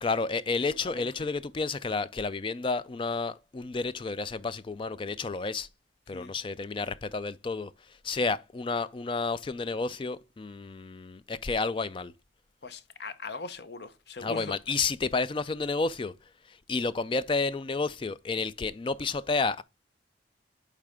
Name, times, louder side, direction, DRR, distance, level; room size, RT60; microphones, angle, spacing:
voice 1, 0.0-5.7 6.1-7.7 8.0-12.1 14.2-16.1 16.5-19.6, left 4 dB, 25° left, 0.3 m, -31 dB
voice 2, 12.6-14.5, left 3 dB, 60° left, 0.7 m, -40 dB
8.6 x 3.3 x 4.8 m
head